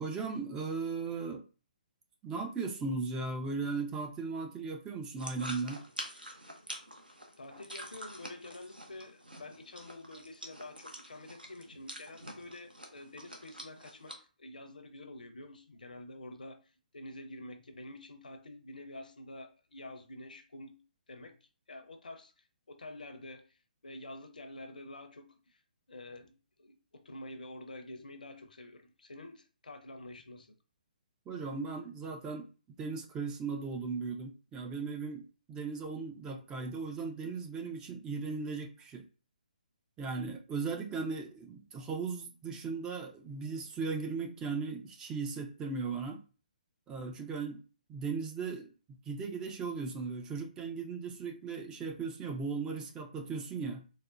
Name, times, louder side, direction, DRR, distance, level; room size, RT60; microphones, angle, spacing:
voice 1, 0.0-1.4 2.2-5.8 31.3-32.5 32.8-39.0 40.0-46.2 46.9-47.6 47.9-48.7 49.1-53.8, right 4 dB, 10° right, 0.3 m, -37 dB
sound 1, 5.2-14.2, right 1 dB, 85° right, 0.8 m, -47 dB
voice 2, 7.4-14.1 14.4-16.6 16.9-20.8 21.1-21.3 21.7-22.3 22.7-23.5 23.8-25.6 25.9-26.3 26.6-30.5, left 1 dB, 65° left, 0.6 m, -48 dB
4.1 x 2.1 x 2.4 m
figure-of-eight pair, 135°, 5 cm